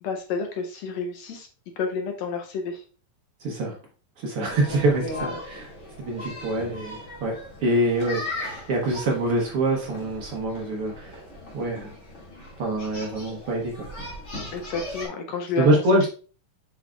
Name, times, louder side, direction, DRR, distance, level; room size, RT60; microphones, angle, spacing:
voice 1, 0.0-1.5 1.8-2.8 4.7-5.4 14.5-16.1, left 4 dB, 75° left, 4 dB, 1.8 m, -31 dB
voice 2, 3.4-3.8 4.2-5.0 5.4-5.7 6.0-11.2 11.5-11.9 12.6-13.9 15.6-16.1, right 1 dB, 60° right, -1 dB, 1.7 m, -25 dB
sound 1, 4.4-15.1, left 1 dB, 25° left, 2.1 m, -39 dB
7.4 x 5.5 x 2.4 m, 0.38 s
omnidirectional pair, 3.5 m